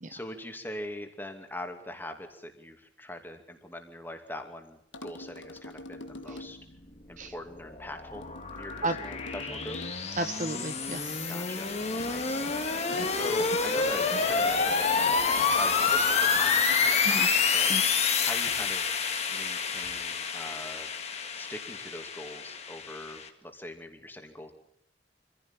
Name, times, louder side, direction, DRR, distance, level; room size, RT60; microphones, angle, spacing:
voice 1, 0.1-6.6 7.1-9.8 11.3-11.7 12.0-12.5 13.0-17.9 18.2-19.0 19.3-20.9 21.4-24.5, left 1 dB, 10° left, 5 dB, 2.6 m, -42 dB
sound 1, 4.9-6.7 8.1-10.2 12.0-17.1 18.5-18.8 19.8-20.1, left 1 dB, 90° left, 1.6 m, -46 dB
sound 2, 7.2-23.3, left 5 dB, 35° left, 2.1 m, -28 dB
voice 2, 10.2-11.3 12.5-12.6 12.9-13.1 17.0-17.3 17.7-17.8, right 2 dB, 45° right, 9 dB, 1.2 m, -33 dB
25.0 x 15.5 x 8.9 m, 0.69 s
head